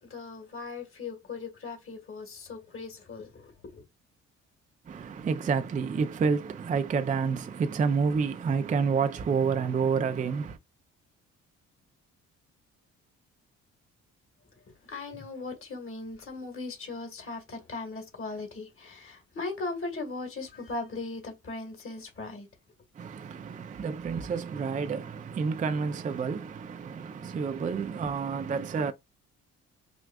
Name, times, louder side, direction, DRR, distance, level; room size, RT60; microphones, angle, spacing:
voice 1, 0.0-3.8 14.8-22.5, left 3 dB, 45° left, 1.8 m, -38 dB
voice 2, 4.9-10.5 23.0-28.9, right 5 dB, 25° right, 0.4 m, -29 dB
6.1 x 2.3 x 2.3 m
cardioid pair, 90°, 30 cm